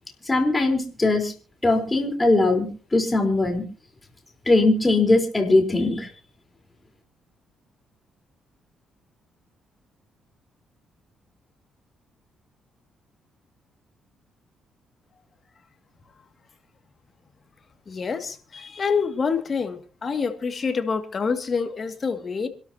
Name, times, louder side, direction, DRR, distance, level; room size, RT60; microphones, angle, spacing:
voice 1, 0.3-1.3 1.6-3.7 4.5-6.1, left 2 dB, 20° left, 4 dB, 4.1 m, -20 dB
voice 2, 17.9-22.5, left 5 dB, 40° left, 7 dB, 2.2 m, -27 dB
26.5 x 12.5 x 2.9 m, 0.36 s
cardioid pair, 90°, 0 cm